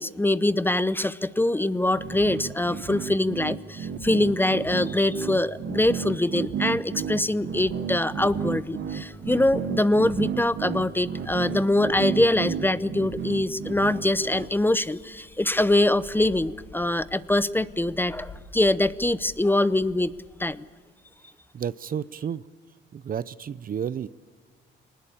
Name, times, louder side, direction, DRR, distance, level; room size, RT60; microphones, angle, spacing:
voice 1, 0.0-20.1 20.4-20.7, left 1 dB, 10° left, 16 dB, 0.7 m, -24 dB
sound 1, 1.9-14.5, right 7 dB, 65° right, 1.5 m, -32 dB
sound 2, 10.9-20.4, left 4 dB, 80° left, 6.1 m, -51 dB
voice 2, 21.5-22.4 22.9-24.1, right 8 dB, 45° right, 18 dB, 0.6 m, -31 dB
23.5 x 20.0 x 8.6 m, 1.5 s
cardioid pair, 90°, 20 cm